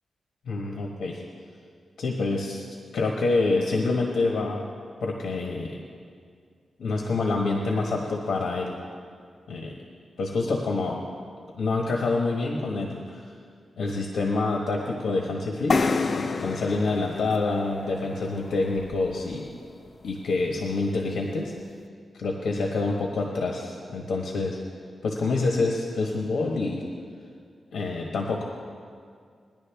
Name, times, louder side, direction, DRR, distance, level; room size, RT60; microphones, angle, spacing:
voice 1, 0.4-1.2 2.0-2.6 2.9-4.7 5.0-5.7 6.8-8.8 9.5-9.7 10.2-11.0 11.6-13.2 13.8-15.8 16.1-19.5 20.0-21.5 22.1-24.6 25.0-26.8 27.7-28.4, left 3 dB, 85° left, 0 dB, 1.2 m, -27 dB
sound 1, 15.7-19.3, left 4 dB, 40° left, 0.5 m, -29 dB
20.0 x 10.5 x 3.5 m, 2.1 s
wide cardioid pair, 130°, 0 cm